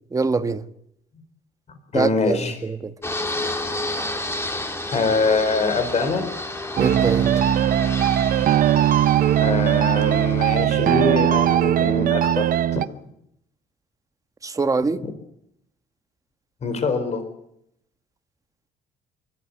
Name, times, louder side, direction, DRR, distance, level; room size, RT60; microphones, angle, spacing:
voice 1, 0.1-0.6 1.9-2.4 6.8-7.3 14.4-15.0, right 4 dB, 20° right, 1.4 m, -23 dB
voice 2, 1.9-2.6 4.9-6.3 9.4-12.9 15.0-15.1 16.6-17.2, left 4 dB, 40° left, 4.2 m, -24 dB
Fixed-wing aircraft airplane, 3.0-10.5, left 2 dB, 15° left, 3.0 m, -31 dB
sound 1, 6.8-12.9, right 11 dB, 55° right, 0.9 m, -19 dB
29.0 x 12.5 x 9.5 m
cardioid pair, 110°, 17 cm